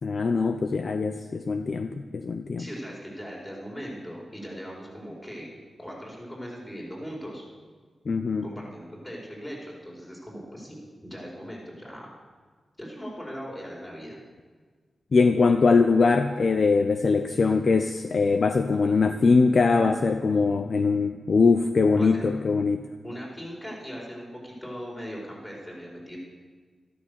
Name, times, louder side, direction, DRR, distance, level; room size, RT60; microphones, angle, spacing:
voice 1, 0.0-2.7 8.1-8.5 15.1-22.8, left 4 dB, 50° left, 7 dB, 0.6 m, -22 dB
voice 2, 2.6-5.5 5.8-7.4 8.4-10.8 11.0-12.1 12.8-14.2 21.9-22.3 23.0-26.2, equal, 15° left, -3 dB, 4.6 m, -39 dB
13.5 x 13.0 x 6.5 m, 1.5 s
wide cardioid pair, 135°, 0 cm